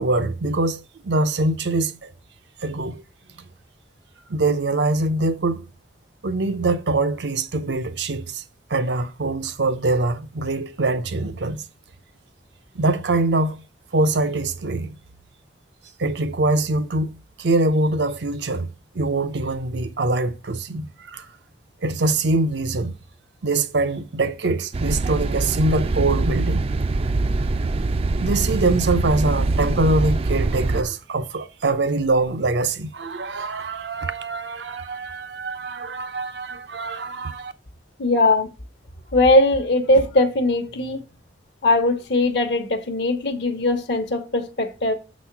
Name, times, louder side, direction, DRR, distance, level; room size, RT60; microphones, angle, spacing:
voice 1, 0.0-2.1 2.6-3.0 4.3-5.6 6.2-8.4 8.7-11.6 12.7-13.6 13.9-15.0 16.0-18.7 18.9-21.3 21.8-22.9 23.4-26.7 28.2-37.5, right 2 dB, 75° right, 0.7 m, -23 dB
sound 1, 24.7-30.8, right 3 dB, 35° right, 0.4 m, -23 dB
voice 2, 38.0-38.5 39.1-41.0 41.6-44.9, left 2 dB, 70° left, 0.9 m, -20 dB
6.5 x 4.2 x 5.8 m
head